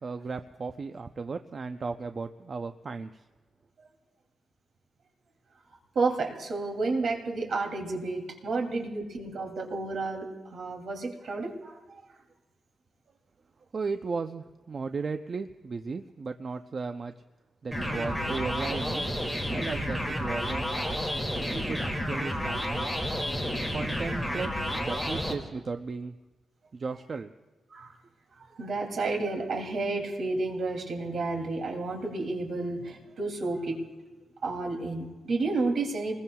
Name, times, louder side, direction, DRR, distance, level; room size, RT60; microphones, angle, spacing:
voice 1, 0.0-3.2 13.7-17.1 17.6-19.1 19.5-21.0 21.5-22.9 23.7-26.2 26.7-27.3, right 4 dB, 40° right, 7 dB, 0.5 m, -35 dB
voice 2, 5.9-12.0 27.7-27.9 28.5-33.8 34.4-36.2, right 3 dB, 65° right, 1 dB, 2.7 m, -31 dB
sound 1, 17.7-25.3, equal, 5° right, 2.3 m, -31 dB
29.0 x 21.0 x 2.3 m, 1.3 s
wide cardioid pair, 145°, 0 cm